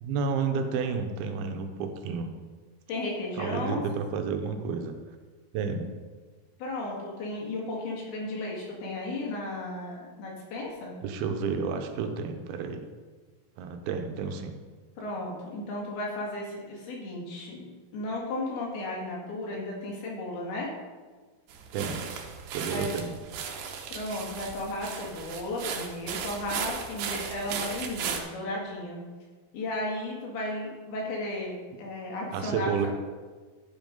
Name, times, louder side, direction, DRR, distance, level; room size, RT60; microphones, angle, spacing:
voice 1, 0.0-2.3 3.4-5.0 5.5-5.9 11.0-12.9 13.6-14.6 21.7-22.0 22.5-23.2 32.3-32.9, right 5 dB, 90° right, 6 dB, 2.7 m, -31 dB
voice 2, 2.9-3.8 6.6-11.0 15.0-17.6 17.9-20.7 22.7-22.9 23.9-29.0 29.5-32.9, left 1 dB, 80° left, -3 dB, 3.8 m, -34 dB
sound 1, 21.5-28.2, right 7 dB, 75° right, 2.4 m, -36 dB
11.0 x 5.1 x 5.2 m, 1.4 s
omnidirectional pair, 4.4 m